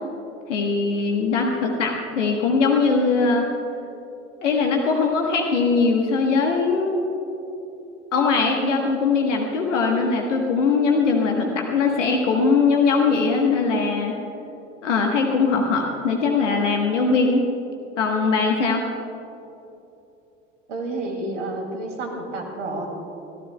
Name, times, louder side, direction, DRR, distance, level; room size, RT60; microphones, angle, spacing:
voice 1, 0.5-3.5 4.4-7.0 8.1-14.1 14.8-17.5 18.0-18.9, left 4 dB, 75° left, 2 dB, 1.3 m, -21 dB
voice 2, 20.7-22.9, right 2 dB, 75° right, 3 dB, 2.5 m, -30 dB
28.0 x 14.5 x 2.3 m, 2.9 s
figure-of-eight pair, 75°, 37 cm